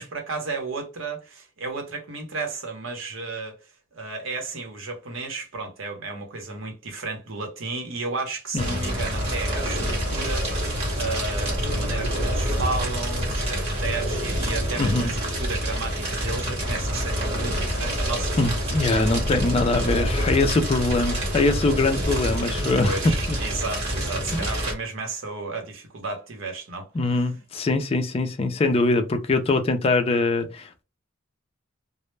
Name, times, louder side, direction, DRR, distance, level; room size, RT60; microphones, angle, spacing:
voice 1, 0.0-3.6 3.9-18.6 22.8-26.9 27.2-27.3, right 3 dB, 80° right, 0.8 m, -33 dB
Fire, 8.6-24.7, equal, 30° right, 1.0 m, -27 dB
voice 2, 14.8-15.1 18.4-23.0 23.3-23.4 24.3-24.5 26.9-30.8, left 2 dB, 30° left, 0.4 m, -23 dB
2.1 x 2.0 x 3.1 m
head